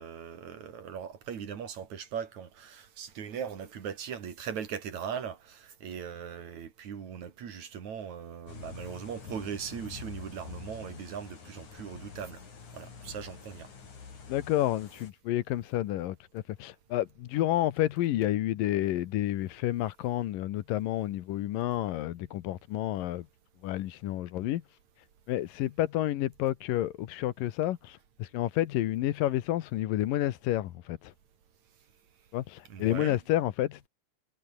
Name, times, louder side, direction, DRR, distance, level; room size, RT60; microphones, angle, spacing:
voice 1, 0.0-12.4 12.7-13.7 32.7-33.2, right 7 dB, 55° right, 3.8 m, -39 dB
sound 1, 8.5-15.1, left 5 dB, 60° left, 5.6 m, -46 dB
voice 2, 14.3-23.3 23.6-24.6 25.3-31.1 32.3-33.9, left 14 dB, 75° left, 2.7 m, -30 dB
omnidirectional pair, 4.0 m